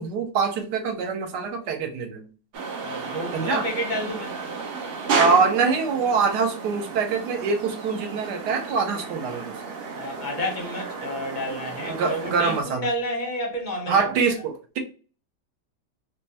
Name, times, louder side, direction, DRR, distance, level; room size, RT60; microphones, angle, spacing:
voice 1, 0.0-2.3 3.3-3.6 5.1-9.6 11.9-12.9 13.9-14.8, right 5 dB, 70° right, 1.3 m, -24 dB
sound 1, 2.5-12.6, right 4 dB, 85° right, 0.5 m, -32 dB
voice 2, 2.8-4.4 9.9-14.2, equal, 40° left, 0.6 m, -30 dB
4.2 x 2.3 x 2.7 m
omnidirectional pair, 1.9 m